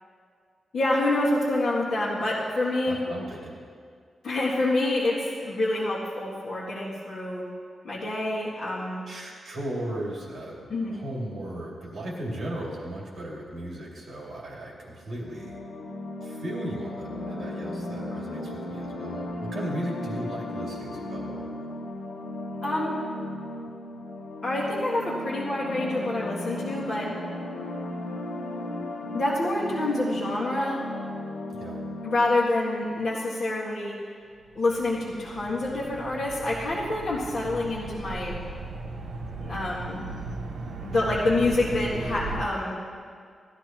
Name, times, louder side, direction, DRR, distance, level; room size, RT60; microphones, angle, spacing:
voice 1, 0.7-3.0 4.2-7.5 7.8-9.0 10.7-11.0 22.6-23.0 24.4-27.1 29.1-30.8 32.0-34.0 34.6-38.4 39.4-40.1 40.8-42.8, left 2 dB, 45° left, -9 dB, 1.9 m, -27 dB
voice 2, 2.9-3.6 9.1-15.6 16.2-21.5 31.5-31.8, right 1 dB, 55° right, -4 dB, 2.6 m, -36 dB
sound 1, 15.2-32.6, left 1 dB, 85° left, 1.1 m, -36 dB
sound 2, 34.4-42.4, right 3 dB, 80° right, 1.3 m, -37 dB
18.5 x 12.0 x 3.0 m, 2.2 s
wide cardioid pair, 180°, 0 cm